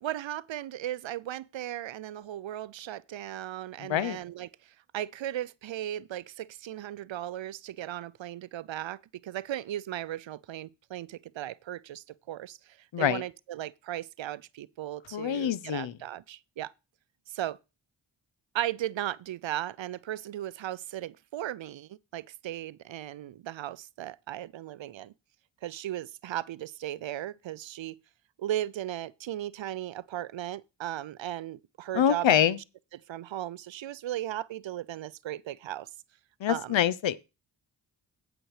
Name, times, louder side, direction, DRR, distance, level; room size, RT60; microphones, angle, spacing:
voice 1, 0.0-4.5 4.9-12.6 13.0-16.7 17.3-17.6 18.5-25.1 25.6-28.0 28.4-32.4 32.9-35.9 36.5-36.8, right 13 dB, 75° right, 0.6 m, -36 dB
voice 2, 3.8-4.2 12.9-13.2 15.1-15.9 31.9-32.6 36.4-37.2, left 10 dB, 70° left, 0.8 m, -25 dB
9.2 x 6.1 x 4.9 m
cardioid pair, 45°, 46 cm